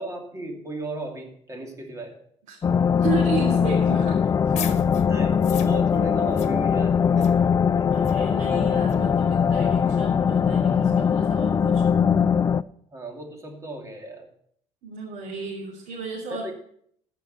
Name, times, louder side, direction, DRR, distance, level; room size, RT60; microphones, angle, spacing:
voice 1, 0.0-2.2 5.1-7.4 7.8-7.9 11.4-11.7 12.9-14.3 16.3-16.5, right 2 dB, 25° right, 2 dB, 2.7 m, -36 dB
sound 1, 2.6-12.6, left 7 dB, 25° left, 0.3 m, -21 dB
voice 2, 3.0-4.8 7.9-11.8 14.8-16.5, right 5 dB, 85° right, -4 dB, 3.1 m, -33 dB
sound 2, 4.2-9.6, left 9 dB, 60° left, 1.3 m, -39 dB
14.5 x 5.4 x 6.8 m, 0.66 s
cardioid pair, 115°, 13 cm